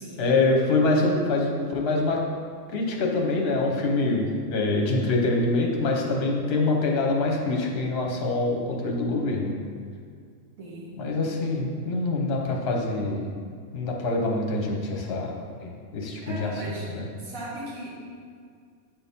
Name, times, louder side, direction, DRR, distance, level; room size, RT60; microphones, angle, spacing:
voice 1, 0.2-2.2 2.7-9.5 11.0-13.3 13.7-15.4 15.6-17.1, left 2 dB, 50° left, 0 dB, 1.0 m, -25 dB
voice 2, 10.6-11.0 16.3-16.9 17.2-17.9, right 1 dB, 70° right, -5 dB, 1.8 m, -37 dB
7.5 x 4.3 x 3.5 m, 2.2 s
omnidirectional pair, 1.5 m